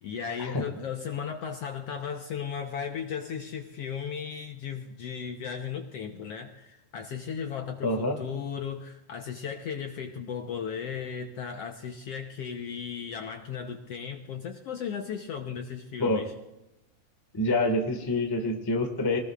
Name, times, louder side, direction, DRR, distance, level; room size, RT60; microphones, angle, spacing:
voice 1, 0.0-16.3, left 7 dB, 70° left, 4 dB, 1.6 m, -36 dB
voice 2, 7.8-8.2 16.0-16.2 17.3-19.2, left 1 dB, 15° left, 4 dB, 0.9 m, -26 dB
24.5 x 19.5 x 2.5 m, 0.93 s
omnidirectional pair, 3.6 m